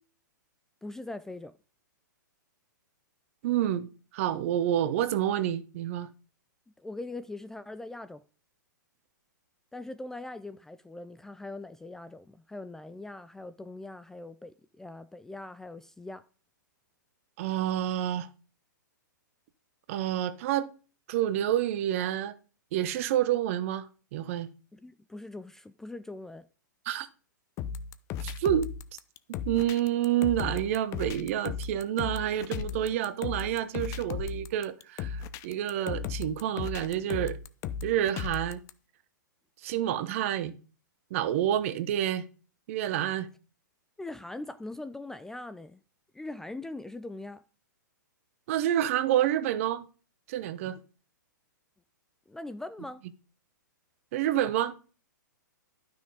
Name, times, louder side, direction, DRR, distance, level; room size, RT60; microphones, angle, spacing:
voice 1, 0.8-1.5 6.8-8.2 9.7-16.2 24.7-26.5 44.0-45.8 46.1-47.4 52.3-53.0, left 2 dB, 5° left, 0.4 m, -41 dB
voice 2, 3.4-3.9 4.1-6.1 17.4-18.3 19.9-20.7 21.1-22.3 22.7-23.9 24.1-24.5 26.9-27.1 28.2-28.7 29.3-37.4 37.8-38.6 39.6-40.5 41.1-42.2 42.7-43.3 48.5-49.9 50.3-50.8 54.1-54.7, right 11 dB, 45° right, 1.0 m, -28 dB
sound 1, 27.6-38.7, left 7 dB, 30° left, 0.7 m, -36 dB
12.0 x 6.2 x 5.0 m
figure-of-eight pair, 115°, 11 cm